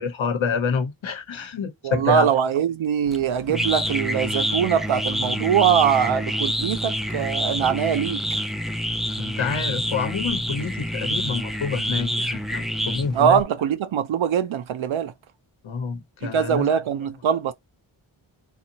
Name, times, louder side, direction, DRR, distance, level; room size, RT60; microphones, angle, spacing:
voice 1, 0.0-2.3 9.2-13.4 15.6-16.7, left 5 dB, 75° left, 1.0 m, -27 dB
voice 2, 1.8-8.2 13.1-15.1 16.2-17.5, right 8 dB, 80° right, 0.6 m, -22 dB
sound 1, 3.1-13.4, equal, ahead, 0.3 m, -27 dB
2.6 x 2.4 x 2.8 m
cardioid pair, 50°, 47 cm